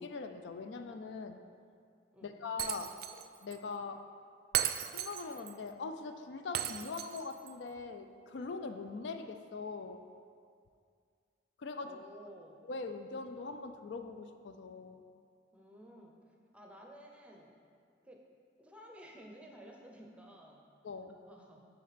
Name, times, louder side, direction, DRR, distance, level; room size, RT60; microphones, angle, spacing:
voice 1, 0.0-1.4 2.2-4.0 4.9-10.0 11.6-12.0 12.7-15.0 20.8-21.2, left 4 dB, 75° left, 7 dB, 0.4 m, -42 dB
Shatter, 2.6-3.3 3.5-3.6 4.5-5.5 6.5-7.5, right 11 dB, 55° right, 0.3 m, -36 dB
voice 2, 11.8-12.6 15.5-16.2 16.5-17.5 18.0-18.2 18.6-20.7 21.3-21.6, equal, 5° right, 0 dB, 0.7 m, -53 dB
9.5 x 4.1 x 4.2 m, 2.2 s
head